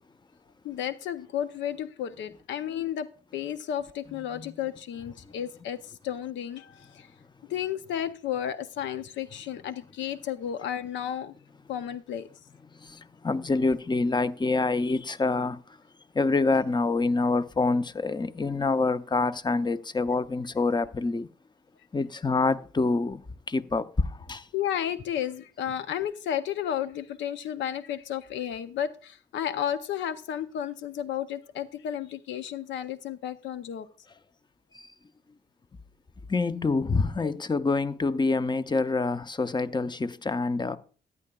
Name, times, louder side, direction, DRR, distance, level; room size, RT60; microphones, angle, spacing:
voice 1, 0.6-3.1 3.3-7.1 7.5-11.3 11.7-12.3 24.5-33.9, left 10 dB, 90° left, 0.6 m, -32 dB
voice 2, 12.8-15.6 16.1-21.3 21.9-23.2 23.5-24.5 34.7-34.9 36.3-40.8, left 3 dB, 25° left, 0.6 m, -26 dB
14.0 x 9.7 x 2.3 m
supercardioid pair, 55°, 19 cm